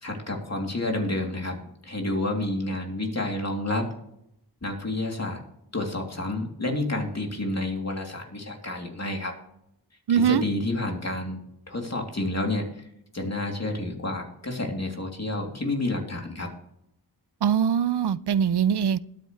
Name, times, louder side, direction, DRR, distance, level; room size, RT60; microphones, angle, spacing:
voice 1, 0.0-1.6 1.8-3.9 4.6-5.4 5.7-9.4 10.3-11.4 11.7-12.7 13.1-16.5, left 2 dB, 40° left, 1 dB, 3.0 m, -29 dB
voice 2, 10.1-10.4 17.4-19.0, right 8 dB, 80° right, 17 dB, 0.5 m, -22 dB
20.5 x 9.1 x 3.2 m, 0.78 s
wide cardioid pair, 60°, 40 cm